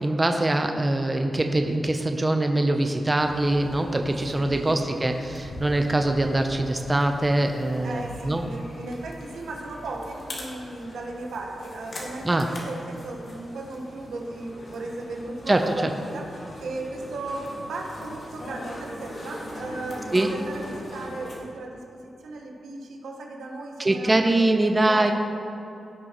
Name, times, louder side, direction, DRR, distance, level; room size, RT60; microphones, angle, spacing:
voice 1, 0.0-8.4 12.2-12.4 15.5-15.6 20.1-20.3 23.8-25.1, right 2 dB, 25° right, 5 dB, 0.6 m, -23 dB
sound 1, 3.1-21.4, left 1 dB, 60° left, 2.0 m, -41 dB
voice 2, 4.3-4.8 7.8-21.8 22.2-24.5 24.8-25.1, right 2 dB, 90° right, 0 dB, 1.3 m, -36 dB
17.0 x 6.1 x 3.0 m, 2.8 s
cardioid pair, 85°, 0 cm